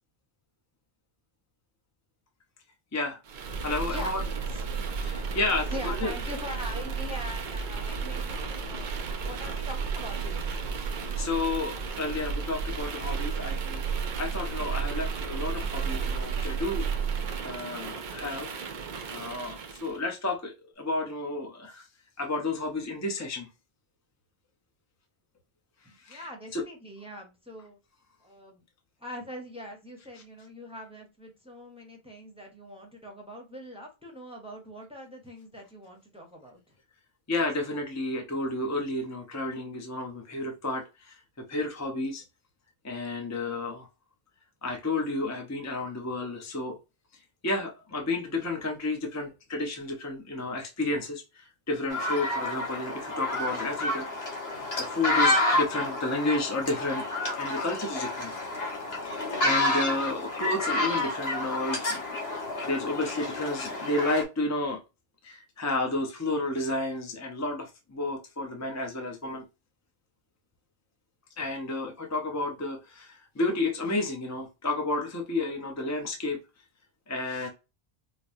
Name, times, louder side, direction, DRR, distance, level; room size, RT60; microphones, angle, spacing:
sound 1, 3.3-20.0, right 5 dB, 55° right, 0.6 m, -33 dB
voice 1, 3.6-4.2 5.0-6.1 10.8-13.9 14.2-16.9 17.4-18.5 19.1-21.9 22.2-23.5 26.0-26.2 26.5-26.6 37.3-42.2 42.8-43.9 44.6-46.8 47.4-54.1 54.8-57.0 57.4-58.3 59.0-62.2 62.6-64.8 65.2-69.4 71.4-76.4 77.1-77.5, left 2 dB, 20° left, 0.6 m, -31 dB
voice 2, 5.7-8.9 9.2-10.5 25.8-27.8 28.2-28.6 29.0-36.7, left 1 dB, 5° right, 0.9 m, -42 dB
sound 2, 51.9-64.2, left 2 dB, 70° left, 1.5 m, -29 dB
4.8 x 2.1 x 2.6 m
omnidirectional pair, 1.1 m